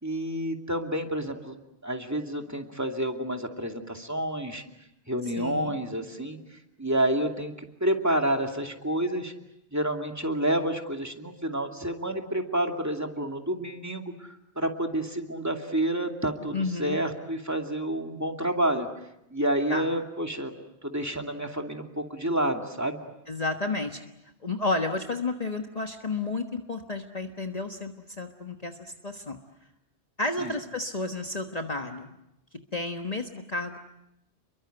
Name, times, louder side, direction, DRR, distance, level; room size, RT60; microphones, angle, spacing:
voice 1, 0.0-1.5 1.8-4.6 5.1-9.3 9.7-14.3 14.6-18.9 19.3-20.5 20.8-23.0 30.4-30.5, right 1 dB, 15° right, 3 dB, 2.5 m, -29 dB
voice 2, 5.4-5.8 16.5-17.0 19.7-19.9 23.3-24.0 24.4-29.4 30.2-32.1 32.7-33.8, left 2 dB, 35° left, 4 dB, 1.5 m, -31 dB
30.0 x 23.0 x 8.0 m, 0.84 s
omnidirectional pair, 1.1 m